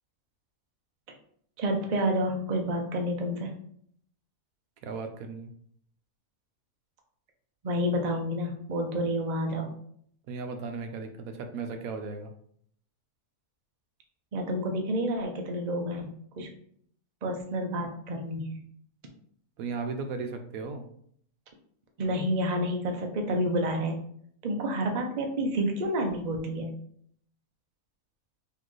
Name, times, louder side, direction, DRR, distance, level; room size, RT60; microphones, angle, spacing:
voice 1, 1.6-3.6 7.6-9.7 14.3-16.5 17.2-18.6 22.0-24.1 24.4-26.7, equal, 50° right, 2 dB, 0.5 m, -29 dB
voice 2, 4.8-5.5 10.3-12.3 19.6-20.8, right 4 dB, 75° right, 6 dB, 1.0 m, -36 dB
4.1 x 3.1 x 3.1 m, 0.65 s
omnidirectional pair, 1.6 m